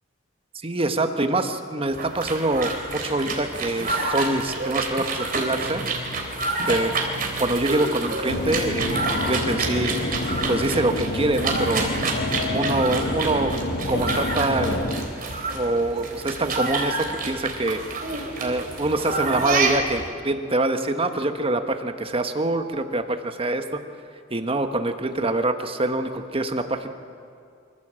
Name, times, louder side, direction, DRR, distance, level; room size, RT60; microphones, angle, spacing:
voice 1, 0.6-5.8 6.6-6.9 7.4-10.0 10.5-11.9 12.5-13.5 13.9-14.8 15.5-17.8 18.4-23.8 24.3-26.9, right 2 dB, 30° right, 7 dB, 1.2 m, -25 dB
sound 1, 1.9-20.1, right 3 dB, 50° right, 3.4 m, -28 dB
sound 2, 8.3-15.1, left 1 dB, 55° left, 1.3 m, -28 dB
25.5 x 14.5 x 7.6 m, 2.4 s
head